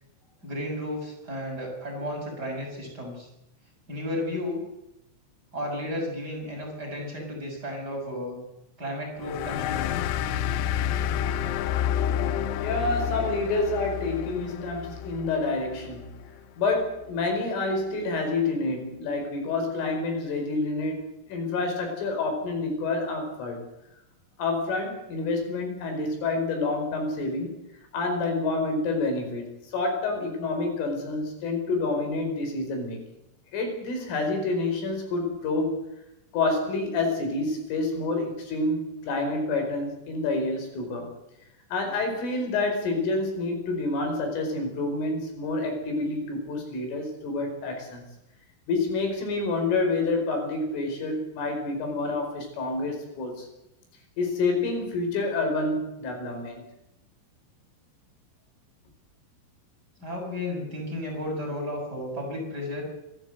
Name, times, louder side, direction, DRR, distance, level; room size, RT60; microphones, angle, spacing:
voice 1, 0.4-3.3 3.9-4.6 5.5-8.4 8.8-10.1 60.0-62.9, left 1 dB, 20° right, -1 dB, 6.7 m, -33 dB
sound 1, 9.2-16.3, left 10 dB, 90° left, 3.7 m, -29 dB
voice 2, 12.6-16.1 16.6-21.0 21.3-23.6 24.4-27.6 27.9-29.5 29.7-33.0 33.5-35.9 36.3-41.1 41.7-48.0 48.7-53.5 54.2-56.6, left 3 dB, 75° left, 3 dB, 7.3 m, -28 dB
27.5 x 13.5 x 7.9 m, 0.88 s
omnidirectional pair, 5.8 m